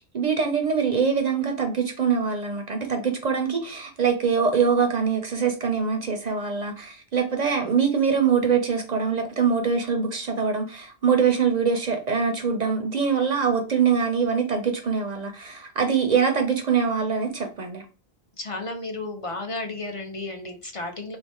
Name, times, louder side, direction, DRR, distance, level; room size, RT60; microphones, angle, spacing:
voice 1, 0.1-17.8, right 6 dB, 55° right, 4 dB, 0.5 m, -23 dB
voice 2, 18.4-21.2, left 2 dB, 45° left, 4 dB, 0.4 m, -33 dB
3.1 x 2.0 x 4.1 m, 0.35 s
omnidirectional pair, 1.1 m